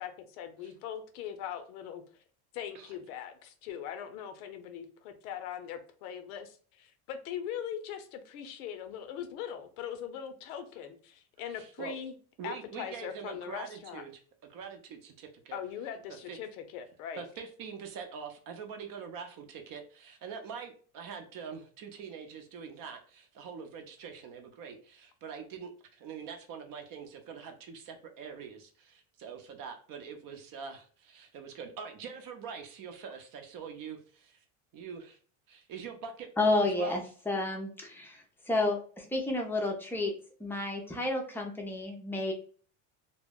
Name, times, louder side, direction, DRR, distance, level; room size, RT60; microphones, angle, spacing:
voice 1, 0.0-2.2 2.5-12.1 12.4-14.0 15.5-17.3, left 9 dB, 85° left, 8 dB, 0.7 m, -41 dB
voice 2, 11.5-12.0 12.4-14.1 14.5-15.6 16.3-16.4 17.2-34.4 34.7-35.2 35.5-37.0, right 6 dB, 50° right, 5 dB, 0.7 m, -44 dB
voice 3, 36.4-40.1 40.4-42.3, left 2 dB, 5° left, 1 dB, 0.4 m, -31 dB
2.2 x 2.0 x 3.5 m, 0.42 s
supercardioid pair, 115°, 43 cm